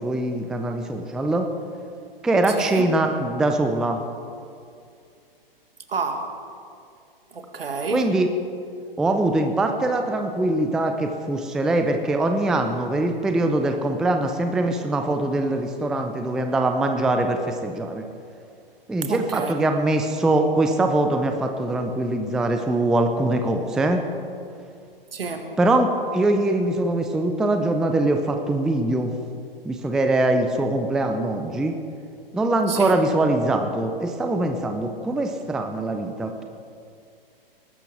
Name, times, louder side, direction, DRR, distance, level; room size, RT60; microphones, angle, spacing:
voice 1, 0.0-1.5 2.2-4.0 7.9-8.3 9.0-18.1 18.9-24.0 25.6-29.1 29.6-31.8 32.3-36.4, right 2 dB, ahead, 5 dB, 0.4 m, -22 dB
voice 2, 2.5-2.9 5.9-6.3 7.3-8.1 19.1-19.5 25.1-25.5 32.7-33.0, right 4 dB, 75° right, 6 dB, 1.7 m, -29 dB
20.0 x 11.5 x 3.5 m, 2.4 s
figure-of-eight pair, 120°, 29 cm